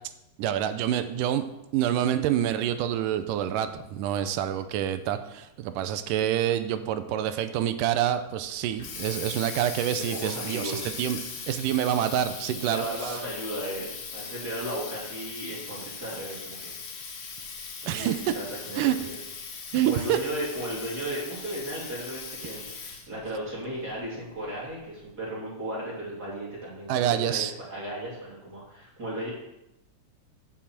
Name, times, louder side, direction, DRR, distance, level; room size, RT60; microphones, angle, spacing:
voice 1, 0.4-1.5 1.7-11.2 11.5-13.2 17.9-18.2 18.8-19.0 19.7-20.2 26.9-27.5, right 11 dB, 85° right, 10 dB, 2.2 m, -27 dB
Water tap faucet, 8.5-23.2, left 5 dB, 80° left, 3.4 m, -39 dB
voice 2, 9.9-10.9 12.6-16.7 17.8-19.1 19.6-29.3, right 1 dB, 30° right, -6 dB, 3.4 m, -35 dB
7.3 x 7.1 x 7.4 m, 0.88 s
omnidirectional pair, 3.8 m